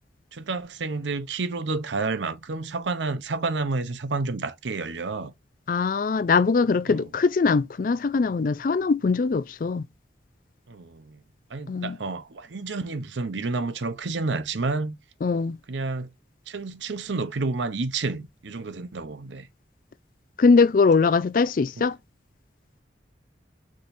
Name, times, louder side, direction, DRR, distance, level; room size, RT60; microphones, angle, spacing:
voice 1, 0.3-5.3 6.9-7.1 10.7-11.2 11.5-15.0 15.7-16.1 16.5-19.5 21.8-21.9, right 3 dB, 85° right, 0.7 m, -30 dB
voice 2, 5.7-9.8 11.7-11.9 15.2-15.6 20.4-22.0, left 4 dB, 50° left, 0.4 m, -21 dB
4.9 x 4.0 x 2.6 m
head